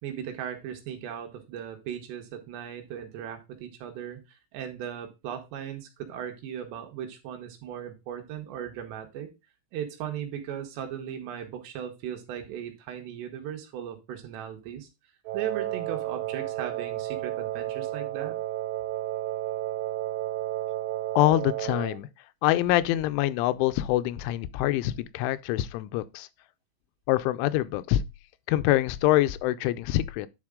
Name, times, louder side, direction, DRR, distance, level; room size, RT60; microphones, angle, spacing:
voice 1, 0.0-9.3 9.7-14.9 15.3-18.4, right 9 dB, 70° right, 3.3 m, -37 dB
Wind instrument woodwind instrument, 15.3-22.0, right 15 dB, 90° right, 3.3 m, -32 dB
voice 2, 21.2-22.1 22.4-26.3 27.1-28.0 28.5-30.3, left 15 dB, 90° left, 3.1 m, -25 dB
10.5 x 4.8 x 3.7 m
omnidirectional pair, 5.4 m